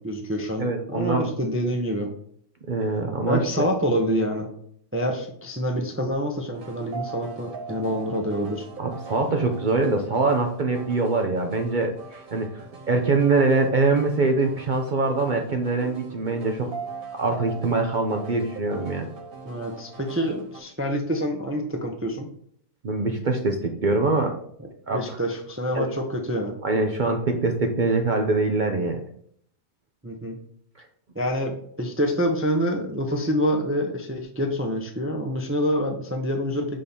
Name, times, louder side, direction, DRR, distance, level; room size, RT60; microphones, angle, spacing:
voice 1, 0.0-2.1 3.3-4.5 4.9-8.7 19.4-22.3 24.6-26.5 30.0-30.4 31.1-36.8, equal, 15° right, 3 dB, 0.4 m, -27 dB
voice 2, 0.6-1.3 2.7-3.7 8.8-12.5 12.9-16.7 17.1-19.1 22.8-24.4 24.9-25.2 25.7-25.9 26.6-29.0, right 3 dB, 80° right, 3 dB, 0.4 m, -23 dB
sound 1, 6.5-20.6, right 4 dB, 55° right, 1.7 m, -41 dB
6.6 x 3.8 x 5.4 m, 0.64 s
omnidirectional pair, 1.9 m